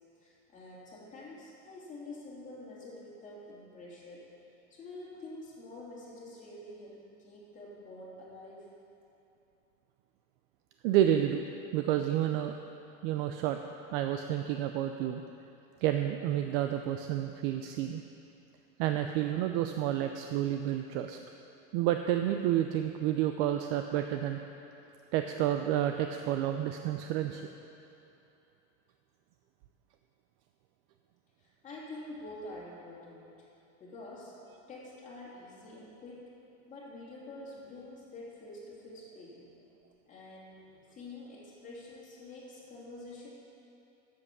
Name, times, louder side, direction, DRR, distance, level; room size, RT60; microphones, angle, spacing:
voice 1, 0.2-4.3 4.7-8.7 31.4-33.4 33.8-34.3 34.7-36.3 36.7-39.5 40.1-40.6 40.9-43.4, left 2 dB, 20° left, -6 dB, 3.0 m, -47 dB
voice 2, 10.8-11.5 11.7-12.5 13.0-13.6 13.9-15.2 15.8-18.0 18.8-21.2 21.7-24.4 25.1-27.4, right 11 dB, 50° right, 6 dB, 0.5 m, -30 dB
11.0 x 7.9 x 6.8 m, 2.9 s
supercardioid pair, 150°, 37 cm